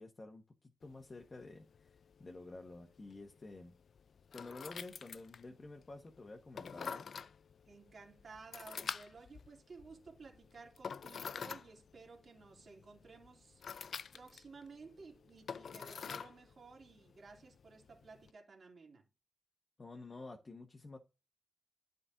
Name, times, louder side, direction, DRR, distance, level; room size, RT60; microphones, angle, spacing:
voice 1, 0.0-3.7 4.3-7.0 19.8-21.0, left 2 dB, 30° left, 1.4 m, -50 dB
sound 1, 0.8-18.3, left 6 dB, 60° left, 0.4 m, -49 dB
voice 2, 7.6-13.6 14.1-19.0, right 4 dB, 50° right, 3.0 m, -55 dB
11.0 x 5.2 x 2.7 m
wide cardioid pair, 115°, 0 cm